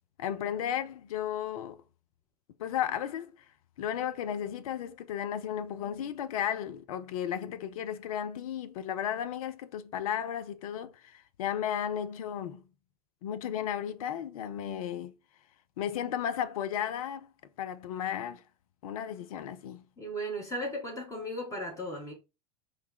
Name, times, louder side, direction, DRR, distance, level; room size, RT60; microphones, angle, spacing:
voice 1, 0.2-1.8 2.6-3.3 3.8-12.6 13.2-15.1 15.8-17.3 17.6-18.4 18.8-19.8, left 9 dB, 60° left, 0.6 m, -34 dB
voice 2, 20.0-22.1, equal, 15° left, 1.6 m, -36 dB
3.3 x 3.2 x 3.8 m
figure-of-eight pair, 85°, 21 cm